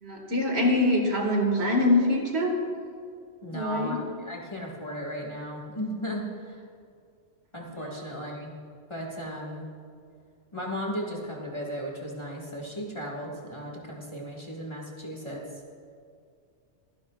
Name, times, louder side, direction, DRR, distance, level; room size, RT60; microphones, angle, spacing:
voice 1, 0.0-2.5 3.5-4.0, left 1 dB, 60° right, 1 dB, 1.9 m, -24 dB
voice 2, 3.4-6.6 7.5-8.6 8.9-9.7 10.5-15.5, equal, 25° left, -3 dB, 1.7 m, -36 dB
24.5 x 10.5 x 2.4 m, 2.3 s
omnidirectional pair, 1.3 m